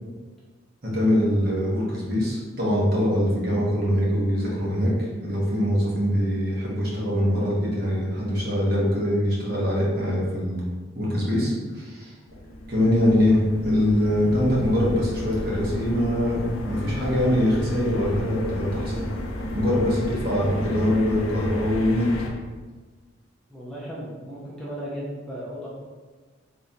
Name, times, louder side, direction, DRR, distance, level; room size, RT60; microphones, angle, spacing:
voice 1, 0.8-10.6 10.9-12.1 12.7-18.9 19.5-22.1, left 1 dB, 45° right, -5 dB, 1.0 m, -23 dB
sound 1, 12.3-22.3, left 1 dB, 75° left, 0.5 m, -32 dB
voice 2, 23.5-25.7, equal, ahead, -8 dB, 0.6 m, -35 dB
3.7 x 3.2 x 2.8 m, 1.4 s
head